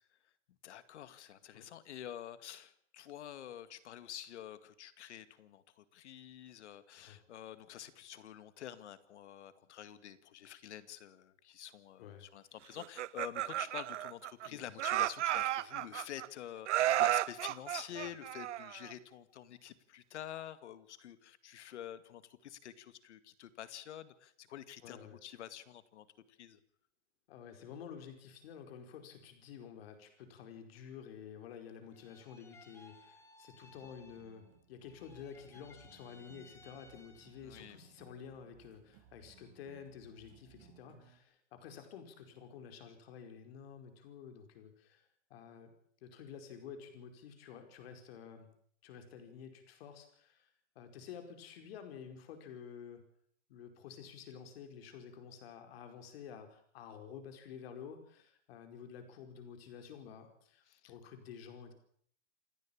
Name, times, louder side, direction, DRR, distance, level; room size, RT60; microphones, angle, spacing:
voice 1, 0.6-26.6 37.4-37.8 60.7-60.9, left 11 dB, 70° left, 13 dB, 2.2 m, -48 dB
Laughter, 12.8-14.5 14.8-16.3 16.7-18.9, right 13 dB, 75° right, 0.9 m, -33 dB
voice 2, 24.8-25.2 27.3-45.7 46.0-48.5 48.8-50.5 50.7-53.0 53.5-61.7, left 7 dB, 55° left, 6 dB, 4.9 m, -51 dB
sound 1, 31.9-34.6 34.8-37.6, left 3 dB, 5° left, 1.6 m, -61 dB
sound 2, 33.7-41.2, right 11 dB, 35° right, 3.2 m, -63 dB
28.0 x 11.0 x 8.8 m, 0.63 s
supercardioid pair, 160°, 36 cm